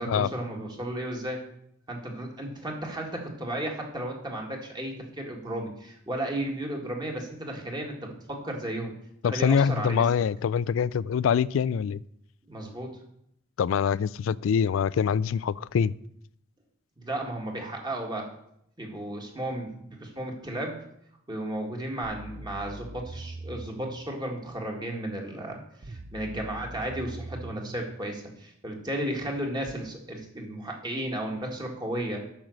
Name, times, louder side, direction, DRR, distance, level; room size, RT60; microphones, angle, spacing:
voice 1, 0.0-1.4 1.9-8.9 9.2-10.1 12.5-13.0 17.0-18.3 18.8-20.8 21.3-32.2, right 1 dB, 20° right, 1.9 m, -34 dB
voice 2, 9.2-12.0 13.6-15.9, left 7 dB, 80° left, 0.3 m, -24 dB
sound 1, 22.0-24.0 25.8-27.8 29.7-29.8, right 2 dB, 40° right, 0.5 m, -41 dB
8.7 x 6.2 x 6.5 m
head